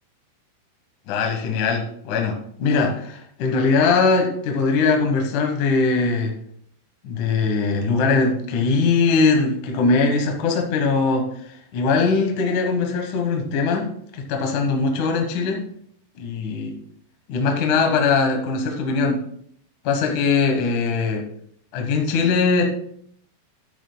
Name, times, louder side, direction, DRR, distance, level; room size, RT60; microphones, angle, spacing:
voice 1, 1.1-6.3 7.0-11.3 11.7-13.9 14.1-15.6 16.2-16.7 17.3-19.2 19.8-21.2 21.7-22.7, left 4 dB, 65° left, 2 dB, 2.1 m, -21 dB
13.0 x 9.1 x 2.2 m, 0.67 s
omnidirectional pair, 5.2 m